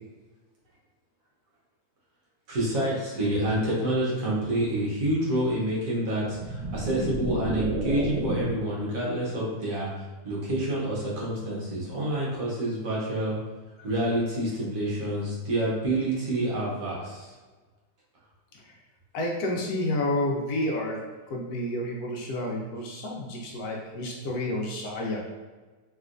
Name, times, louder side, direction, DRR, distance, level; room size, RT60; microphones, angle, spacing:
voice 1, 2.5-13.4 13.8-17.3, right 1 dB, 60° right, -6 dB, 1.2 m, -28 dB
sound 1, 6.2-8.7, right 1 dB, 85° right, 1.3 m, -31 dB
voice 2, 19.1-21.0 21.3-25.2, left 1 dB, 70° left, -1 dB, 1.0 m, -30 dB
3.2 x 2.9 x 2.4 m, 1.3 s
omnidirectional pair, 1.8 m